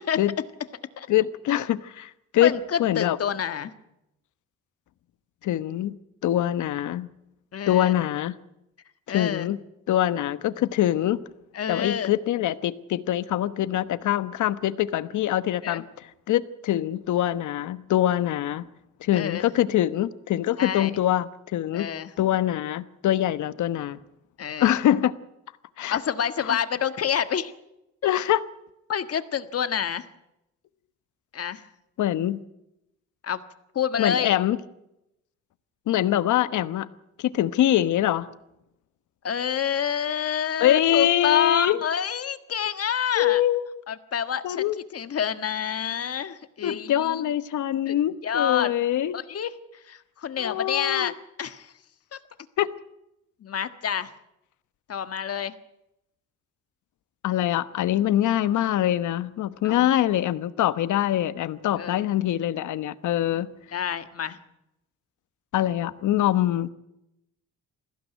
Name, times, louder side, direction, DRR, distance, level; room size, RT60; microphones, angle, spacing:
voice 1, 1.1-3.2 5.4-6.0 6.2-7.1 7.7-8.3 9.1-9.6 9.9-11.2 11.7-18.6 19.0-21.9 22.2-24.0 24.6-25.1 25.8-26.0 26.4-26.6 28.0-28.4 32.0-32.4 34.0-34.6 35.9-36.9 37.2-38.3 40.6-41.8 43.1-43.8 44.4-44.8 46.6-49.2 50.4-51.1 52.6-52.7 57.2-63.5 65.5-66.7, left 12 dB, 75° left, 14 dB, 1.1 m, -24 dB
voice 2, 2.4-3.7 7.5-7.9 9.1-9.5 11.5-12.1 15.6-15.8 19.1-19.5 20.6-20.9 21.7-22.1 24.4-24.7 25.9-27.5 28.9-30.1 31.3-31.6 33.2-33.4 33.7-34.3 39.2-43.4 43.9-47.2 47.8-47.9 48.2-48.7 49.1-49.5 49.9-51.1 51.4-51.7 52.1-52.2 53.4-54.1 54.9-55.5 59.6-59.9 61.8-62.0 63.7-64.4, left 8 dB, 50° left, 10 dB, 1.6 m, -28 dB
21.0 x 16.0 x 9.3 m, 0.87 s
cardioid pair, 90°, 30 cm